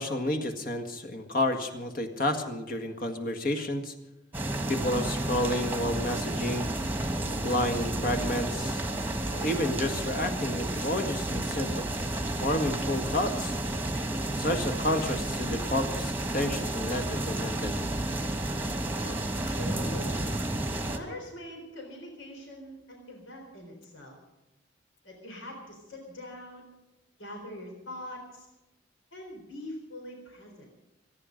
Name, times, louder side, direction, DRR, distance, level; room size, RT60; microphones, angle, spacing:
voice 1, 0.0-3.9 4.7-6.7 7.4-8.8 9.3-11.8 12.4-13.6 14.4-17.7, left 1 dB, 45° left, 6 dB, 1.8 m, -30 dB
sound 1, 4.3-21.0, right 1 dB, 10° right, 1.3 m, -31 dB
voice 2, 18.9-20.3 20.7-24.2 25.0-26.7 27.2-28.5 29.1-30.7, left 1 dB, 85° left, 2 dB, 4.1 m, -43 dB
26.0 x 10.5 x 5.2 m, 1.0 s
head